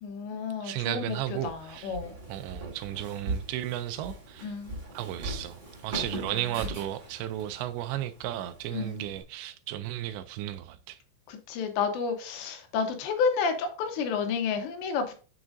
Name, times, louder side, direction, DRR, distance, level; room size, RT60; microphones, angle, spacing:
voice 1, 0.0-2.1 4.4-4.8 6.1-6.4 8.7-9.0 11.3-15.1, left 5 dB, 75° left, 3.1 m, -31 dB
voice 2, 0.6-2.0 2.3-4.5 4.9-11.0, right 13 dB, 85° right, 2.7 m, -34 dB
Walk footsteps, 1.0-9.2, right 2 dB, 30° right, 3.0 m, -40 dB
8.4 x 7.2 x 2.6 m
omnidirectional pair, 5.2 m